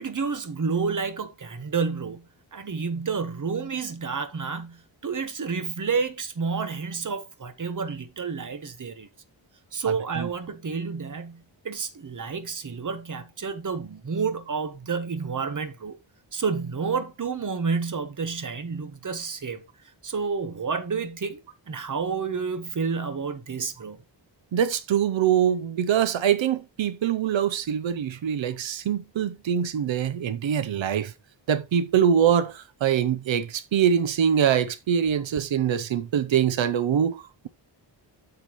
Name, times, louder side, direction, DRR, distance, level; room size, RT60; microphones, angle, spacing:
voice 1, 0.0-2.2 2.5-9.1 9.7-16.0 16.3-19.6 20.0-21.4 21.7-24.0, right 5 dB, 45° right, 1.2 m, -30 dB
voice 2, 24.5-31.1 31.5-37.5, right 8 dB, 90° right, 0.7 m, -24 dB
9.1 x 6.8 x 3.0 m
wide cardioid pair, 160°, 45 cm